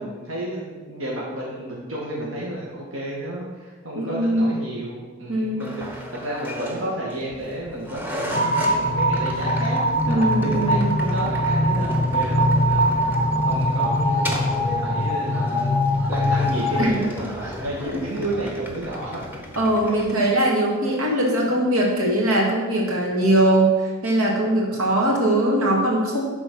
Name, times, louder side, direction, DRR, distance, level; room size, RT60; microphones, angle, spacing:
voice 1, 0.0-9.8 10.1-13.0 13.4-19.2 19.8-20.2 20.8-21.3 23.1-23.3 24.7-24.9, right 1 dB, 65° right, -5 dB, 1.8 m, -32 dB
voice 2, 4.0-4.5 5.3-5.6 10.1-10.9 16.8-17.1 19.6-23.7 24.0-26.2, right 1 dB, 85° right, -2 dB, 2.5 m, -21 dB
sound 1, 5.6-20.1, equal, 10° right, 1.0 m, -35 dB
sound 2, 8.3-16.9, equal, 30° left, 0.6 m, -22 dB
12.0 x 4.4 x 6.2 m, 1.3 s
head